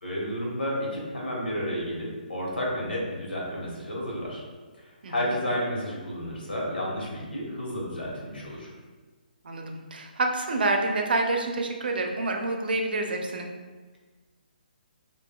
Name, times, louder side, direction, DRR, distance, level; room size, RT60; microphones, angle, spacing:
voice 1, 0.0-4.4 5.1-8.7, equal, 85° left, -3 dB, 1.3 m, -31 dB
voice 2, 5.0-5.3 9.4-13.5, right 2 dB, 75° right, 3 dB, 0.6 m, -28 dB
5.4 x 2.6 x 2.2 m, 1.3 s
hypercardioid pair, 155°, 5 cm